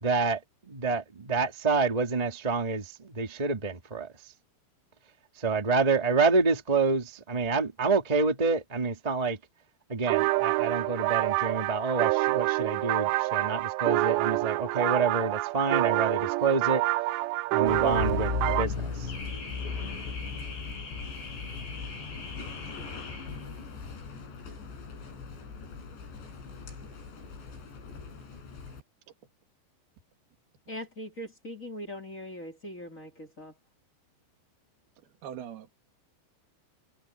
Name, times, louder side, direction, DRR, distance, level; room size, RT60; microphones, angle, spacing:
voice 1, 0.0-4.1 5.4-9.4 9.9-16.8 17.5-19.1, right 4 dB, 20° right, 0.9 m, -28 dB
sound 1, 10.0-18.7, right 20 dB, 90° right, 2.9 m, -27 dB
Car / Alarm, 17.7-28.8, left 5 dB, 85° left, 8.7 m, -37 dB
voice 2, 30.7-33.5, left 1 dB, 20° left, 2.7 m, -41 dB
voice 3, 35.0-35.7, right 9 dB, 65° right, 4.1 m, -42 dB
omnidirectional pair, 5.0 m